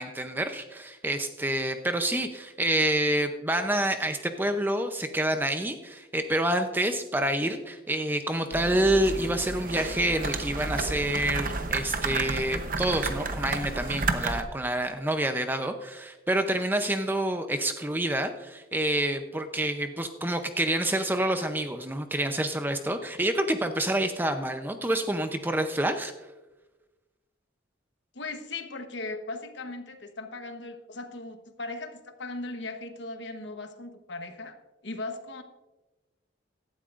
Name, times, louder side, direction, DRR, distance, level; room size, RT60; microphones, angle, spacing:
voice 1, 0.0-26.1, right 1 dB, 10° right, 7 dB, 0.6 m, -28 dB
sound 1, 8.5-14.4, right 3 dB, 45° right, 0.8 m, -31 dB
voice 2, 28.1-34.6 34.8-35.4, left 2 dB, 70° left, 7 dB, 1.1 m, -38 dB
17.0 x 12.0 x 2.5 m, 1.1 s
head